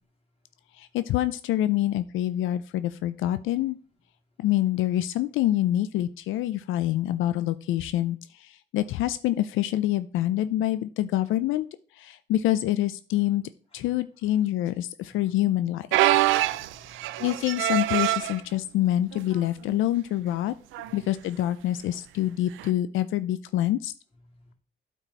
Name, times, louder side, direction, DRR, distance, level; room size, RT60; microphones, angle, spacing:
voice 1, 0.8-3.8 4.4-11.7 12.0-13.4 13.7-15.9 17.2-20.5 20.9-23.9, left 13 dB, 85° left, 13 dB, 0.4 m, -26 dB
sound 1, 15.9-18.4 19.1-19.4 19.7-19.8 20.7-21.0 22.6-22.7, right 15 dB, 85° right, 0.4 m, -24 dB
voice 2, 16.1-17.3 20.8-21.1 22.2-22.3 24.5-24.6, left 1 dB, 30° left, -1 dB, 2.4 m, -54 dB
9.0 x 4.3 x 4.1 m, 0.40 s
cardioid pair, 90°, 20 cm